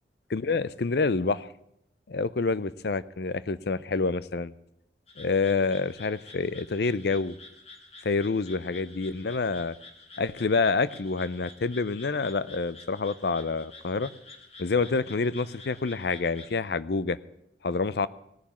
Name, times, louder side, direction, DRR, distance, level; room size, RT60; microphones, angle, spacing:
voice 1, 0.3-1.5 2.1-4.5 5.2-7.4 8.0-9.7 10.2-14.1 14.6-17.2 17.6-18.1, left 4 dB, 55° left, 17 dB, 0.5 m, -27 dB
sound 1, 5.1-16.6, left 3 dB, 35° left, 1.8 m, -50 dB
17.5 x 7.2 x 9.5 m, 0.80 s
head